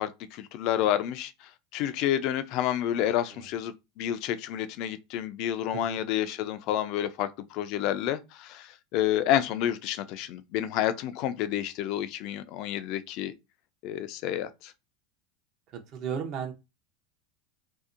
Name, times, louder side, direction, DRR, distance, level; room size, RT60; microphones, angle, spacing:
voice 1, 0.0-13.3 13.8-14.7, left 11 dB, 55° left, 0.3 m, -29 dB
voice 2, 15.7-16.5, right 7 dB, 50° right, 0.6 m, -35 dB
2.7 x 2.1 x 2.5 m
hypercardioid pair, 100°, 0 cm